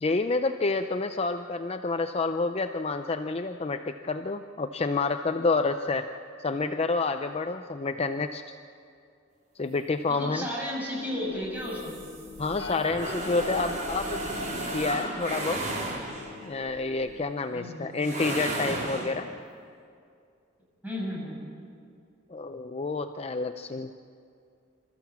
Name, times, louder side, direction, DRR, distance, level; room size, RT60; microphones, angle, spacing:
voice 1, 0.0-6.1 6.4-8.4 9.6-10.5 12.4-14.2 14.7-15.6 16.4-19.3 22.3-23.9, left 3 dB, 30° left, 8 dB, 0.5 m, -29 dB
voice 2, 10.1-12.0 17.5-17.9 20.8-21.4, equal, 10° right, -5 dB, 6.8 m, -33 dB
sound 1, 11.0-17.3, left 5 dB, 85° left, 1.3 m, -43 dB
sound 2, 11.6-16.4 18.0-19.2, right 1 dB, 40° right, 4.4 m, -34 dB
26.0 x 14.0 x 7.3 m, 2.4 s
head